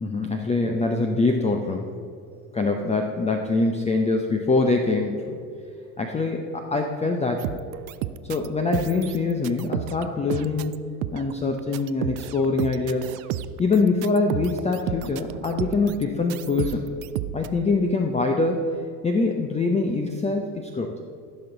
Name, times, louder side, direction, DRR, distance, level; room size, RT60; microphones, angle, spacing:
voice 1, 0.0-1.9 2.5-5.4 6.0-7.6 8.2-10.7 11.1-13.1 13.6-16.9 17.3-18.7 19.0-20.9, left 3 dB, 15° left, 4 dB, 0.7 m, -24 dB
sound 1, 7.4-8.5 8.7-10.0 10.3-10.8 11.0-11.3 11.6-16.0 16.3-17.5, right 13 dB, 45° right, 0.5 m, -32 dB
15.5 x 6.2 x 3.9 m, 2.4 s
figure-of-eight pair, 65°, 48 cm